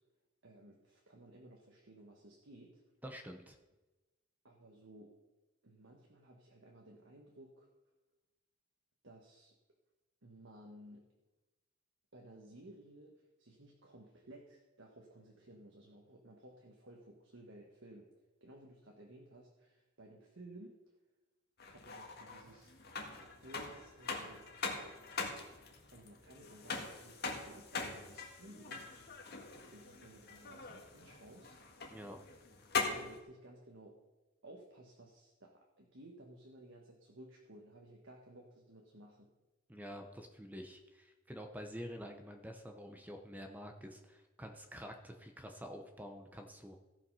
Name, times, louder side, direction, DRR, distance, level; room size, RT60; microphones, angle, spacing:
voice 1, 0.4-2.8 4.4-5.1 5.6-7.7 9.0-9.5 10.2-11.0 12.1-18.1 18.4-20.8 21.7-22.7 23.2-24.4 25.9-29.1 29.5-31.6 32.9-33.9 34.4-39.3, right 1 dB, 65° right, 0 dB, 1.5 m, -56 dB
voice 2, 3.0-3.6 31.9-32.2 39.7-46.8, equal, 10° right, 5 dB, 0.8 m, -48 dB
sound 1, 21.6-33.2, left 4 dB, 50° left, 1.8 m, -42 dB
16.5 x 5.8 x 5.5 m, 1.1 s
head